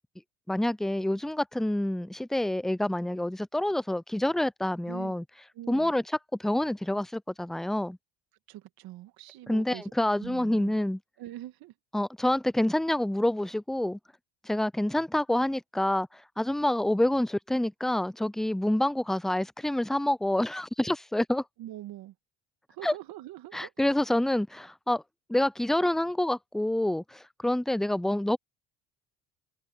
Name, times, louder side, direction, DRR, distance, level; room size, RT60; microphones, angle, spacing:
voice 1, 0.5-5.2 5.7-6.0 6.4-8.0 9.5-11.0 11.9-14.0 14.4-21.4 22.8-22.9 23.5-25.0 25.3-28.4, left 1 dB, ahead, 0.4 m, -27 dB
voice 2, 4.9-5.2 5.5-5.9 8.5-9.9 10.2-10.9 11.2-11.7 21.6-22.1 22.7-23.7, right 14 dB, 70° right, 2.4 m, -43 dB
supercardioid pair, 90°, 37 cm